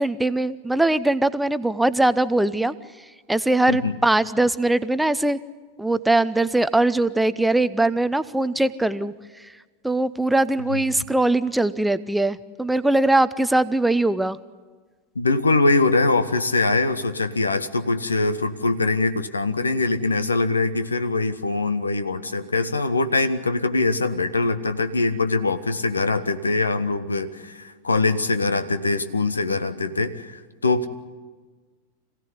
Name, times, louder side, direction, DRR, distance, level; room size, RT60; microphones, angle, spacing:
voice 1, 0.0-2.7 3.3-5.4 5.8-9.1 9.8-14.4, right 2 dB, 5° right, 14 dB, 0.6 m, -21 dB
voice 2, 15.1-30.9, left 3 dB, 75° left, 11 dB, 1.2 m, -23 dB
26.0 x 16.5 x 9.8 m, 1.4 s
figure-of-eight pair, 90°, 0 cm